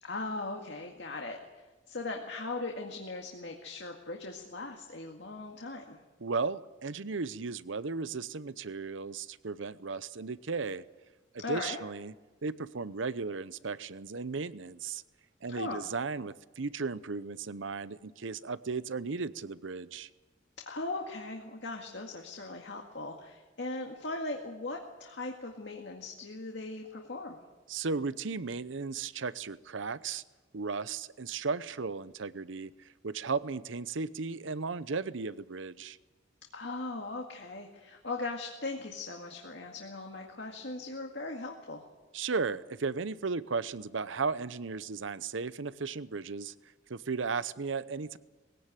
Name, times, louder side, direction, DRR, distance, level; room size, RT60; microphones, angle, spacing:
voice 1, 0.0-6.0 11.4-11.8 15.5-15.8 20.6-27.4 36.5-41.8, left 3 dB, 65° left, 1 dB, 2.0 m, -39 dB
voice 2, 6.2-10.8 11.3-12.1 12.4-15.0 15.4-20.1 27.7-30.2 30.5-32.7 33.0-36.0 42.1-46.5 46.9-48.2, right 4 dB, 80° right, 16 dB, 0.7 m, -35 dB
21.5 x 16.5 x 9.2 m, 1.2 s
head